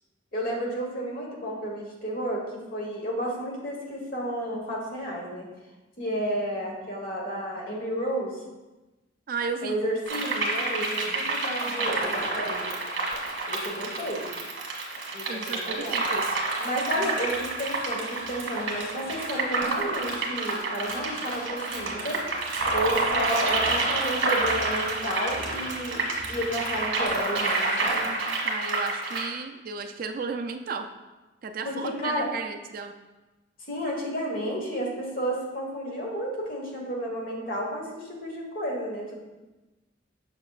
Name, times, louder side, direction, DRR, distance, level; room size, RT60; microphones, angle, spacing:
voice 1, 0.3-5.5 6.0-8.4 9.6-12.7 13.5-14.3 15.1-16.0 16.6-22.2 22.7-26.0 26.3-28.1 31.6-32.3 33.7-39.2, equal, 45° left, -1 dB, 1.3 m, -31 dB
voice 2, 9.3-9.8 15.3-16.4 17.0-17.2 28.4-30.9 31.4-33.0, right 4 dB, 45° right, 6 dB, 0.3 m, -34 dB
sound 1, 10.1-29.3, right 3 dB, 75° right, 1.3 m, -29 dB
sound 2, 16.8-27.1, equal, 5° right, 2.0 m, -48 dB
Squeak, 16.9-21.9, left 2 dB, 85° left, 1.3 m, -49 dB
6.5 x 6.3 x 2.4 m, 1.1 s
head